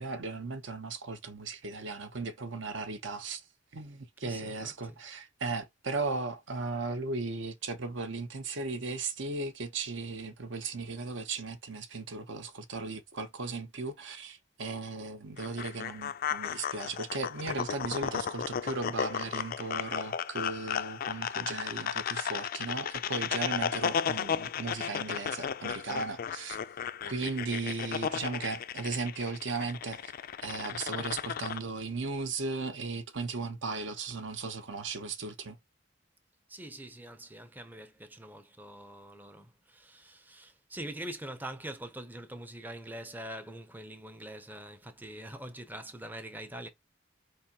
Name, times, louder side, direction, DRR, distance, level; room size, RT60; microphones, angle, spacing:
voice 1, 0.0-3.4 3.7-26.6 27.0-30.1 30.4-35.6, right 3 dB, 65° right, 0.7 m, -36 dB
voice 2, 4.2-5.0 27.8-28.0 36.5-46.7, right 1 dB, 10° right, 0.5 m, -44 dB
sound 1, 15.4-31.6, left 8 dB, 45° left, 0.3 m, -34 dB
4.5 x 3.4 x 2.8 m
head